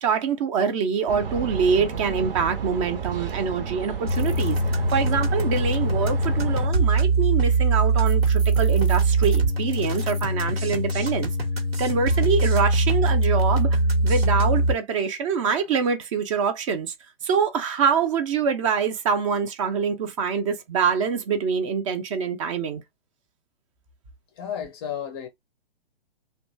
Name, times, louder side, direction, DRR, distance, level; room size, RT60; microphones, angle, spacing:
voice 1, 0.0-11.3 11.8-16.9 17.2-22.8, right 6 dB, 30° right, 0.6 m, -25 dB
sound 1, 1.1-6.7, right 6 dB, 65° right, 0.9 m, -31 dB
sound 2, 4.1-14.7, right 2 dB, 80° right, 1.2 m, -22 dB
voice 2, 24.4-25.3, left 9 dB, 25° left, 0.5 m, -32 dB
2.9 x 2.2 x 2.6 m
hypercardioid pair, 130°, 30 cm